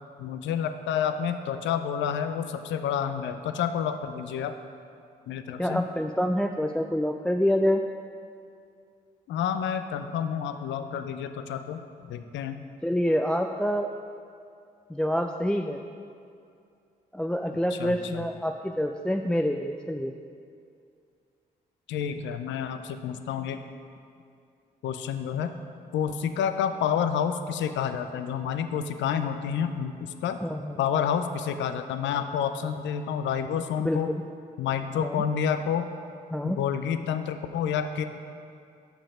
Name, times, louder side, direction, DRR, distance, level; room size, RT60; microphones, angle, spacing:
voice 1, 0.2-4.5 5.3-5.8 9.3-11.8 12.1-12.6 17.7-18.3 21.9-23.6 24.8-25.6 25.9-30.4 30.8-34.1 34.6-35.9 36.4-38.0, left 8 dB, 75° left, 9 dB, 0.4 m, -29 dB
voice 2, 5.6-7.8 12.8-13.9 14.9-15.8 17.1-20.1 30.4-30.8 33.8-34.2 35.0-35.2 36.3-36.6, equal, 5° left, 4 dB, 0.3 m, -27 dB
7.0 x 5.7 x 4.9 m, 2.4 s
supercardioid pair, 45°, 19 cm